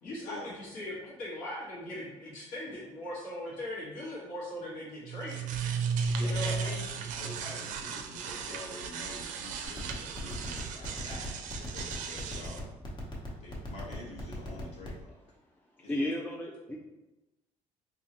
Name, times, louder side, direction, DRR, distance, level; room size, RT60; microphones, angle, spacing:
voice 1, 0.0-5.4 6.2-6.9, left 1 dB, 85° left, -7 dB, 1.4 m, -39 dB
sound 1, 5.1-12.6, right 5 dB, 75° right, 0.4 m, -35 dB
voice 2, 6.1-12.7 13.4-15.1 15.8-16.1, left 2 dB, 55° left, -3 dB, 1.3 m, -46 dB
sound 2, 9.6-15.0, left 1 dB, 35° left, 0.9 m, -40 dB
voice 3, 13.0-13.4 15.8-16.8, left 1 dB, 10° left, -2 dB, 0.3 m, -35 dB
3.8 x 2.8 x 2.9 m, 1.0 s
cardioid pair, 135°, 13 cm